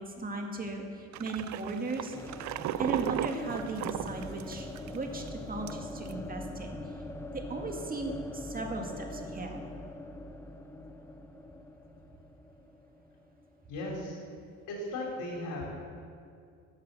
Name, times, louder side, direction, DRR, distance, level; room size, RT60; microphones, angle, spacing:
voice 1, 0.0-2.2 2.8-6.8 7.3-9.6, right 3 dB, 25° right, 2 dB, 2.0 m, -37 dB
sound 1, 1.1-5.0 5.3-5.4 5.7-6.1, right 14 dB, 60° right, 0.5 m, -35 dB
sound 2, 2.1-13.9, left 1 dB, 10° left, 0.8 m, -43 dB
voice 2, 13.7-14.2 14.7-15.7, left 1 dB, 70° left, -2 dB, 3.4 m, -36 dB
12.0 x 7.3 x 6.9 m, 2.4 s
supercardioid pair, 85°, 32 cm